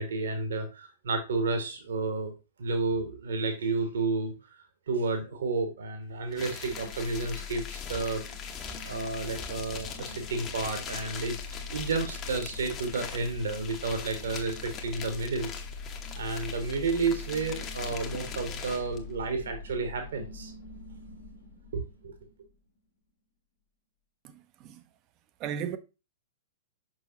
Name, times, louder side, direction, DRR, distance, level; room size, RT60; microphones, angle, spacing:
voice 1, 0.0-2.3 2.6-4.3 4.9-8.2 8.8-11.4 11.7-15.5 16.1-20.5 21.7-22.1, right 3 dB, 60° right, 1.4 m, -31 dB
sound 1, 6.3-19.0, left 6 dB, 25° left, 1.0 m, -42 dB
sound 2, 6.6-22.5, left 4 dB, 60° left, 1.6 m, -43 dB
voice 2, 24.2-24.8 25.4-25.8, right 8 dB, 30° right, 0.7 m, -36 dB
6.2 x 5.6 x 2.9 m
figure-of-eight pair, 105°, 0 cm